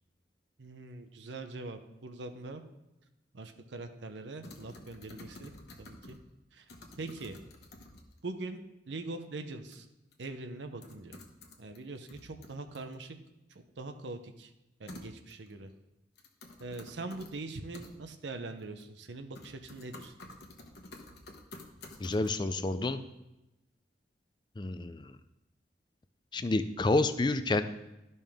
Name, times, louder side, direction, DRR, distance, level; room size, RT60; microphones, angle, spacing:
voice 1, 0.6-2.6 3.3-5.5 5.8-6.2 6.5-6.7 7.0-7.4 8.2-9.9 10.2-11.2 11.6-13.2 13.5-14.5 14.8-15.7 16.6-20.1, right 2 dB, 85° right, 7 dB, 0.7 m, -42 dB
sound 1, 4.4-6.3 6.7-8.2 9.7-9.8 10.1-10.2 10.8-11.8 12.1-12.9 14.9-15.5 16.2-17.3 17.7-17.9 18.6-19.1 19.4-22.3, left 2 dB, 65° left, 1.1 m, -50 dB
voice 2, 22.0-23.0 24.6-25.1 26.3-27.7, left 2 dB, 25° left, 11 dB, 0.4 m, -29 dB
12.5 x 5.5 x 3.5 m, 0.94 s
head